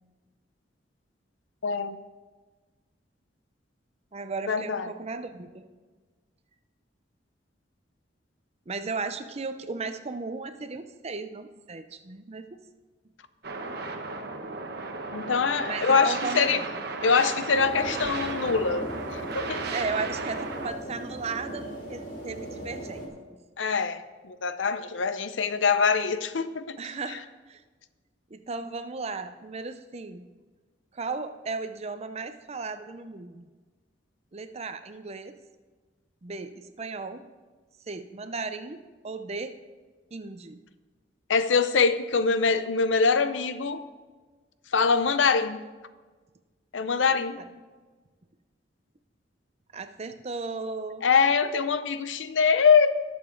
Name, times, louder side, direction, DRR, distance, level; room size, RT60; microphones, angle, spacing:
voice 1, 1.6-2.0 4.5-4.9 15.1-16.6 17.0-19.6 23.6-26.8 41.3-43.8 44.7-45.6 46.7-47.4 51.0-53.0, left 5 dB, 85° left, 12 dB, 0.6 m, -24 dB
voice 2, 4.1-5.7 8.7-12.6 15.6-16.7 19.7-23.4 26.8-27.6 28.3-30.3 30.9-33.5 34.3-35.3 36.2-37.2 37.9-39.5 40.1-40.6 49.7-51.1, right 4 dB, 35° right, 10 dB, 0.6 m, -36 dB
sound 1, 13.4-20.7, right 3 dB, 60° right, 1.1 m, -35 dB
sound 2, 17.5-23.1, right 1 dB, 55° left, 3.1 m, -38 dB
19.5 x 6.9 x 3.9 m, 1.3 s
head